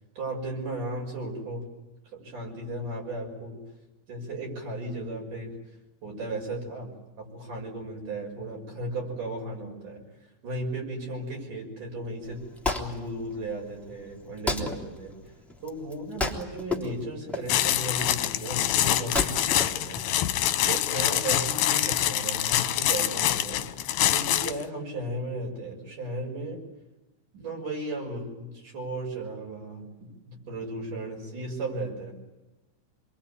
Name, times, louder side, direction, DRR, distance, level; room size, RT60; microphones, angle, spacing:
voice 1, 0.2-1.6 2.1-3.6 4.1-5.5 6.0-6.9 7.2-10.0 10.4-12.4 12.7-15.1 15.6-20.0 20.5-26.6 27.3-32.1, right 2 dB, 55° right, 0 dB, 7.6 m, -35 dB
Wood, 12.2-20.6, left 2 dB, ahead, 2.6 m, -34 dB
sound 1, 17.5-24.6, left 12 dB, 75° left, 2.8 m, -25 dB
27.5 x 23.5 x 9.3 m, 1.0 s
omnidirectional pair, 4.4 m